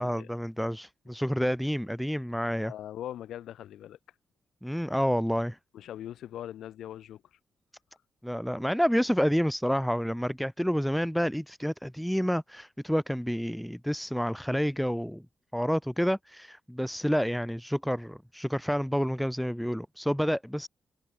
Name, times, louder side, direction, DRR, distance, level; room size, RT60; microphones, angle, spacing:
voice 1, 0.0-2.7 4.6-5.6 8.2-15.2 15.5-20.7, equal, ahead, 1.2 m, -29 dB
voice 2, 2.6-4.0 5.7-7.2, left 11 dB, 85° left, 4.9 m, -41 dB
open air
cardioid pair, 130°, 0 cm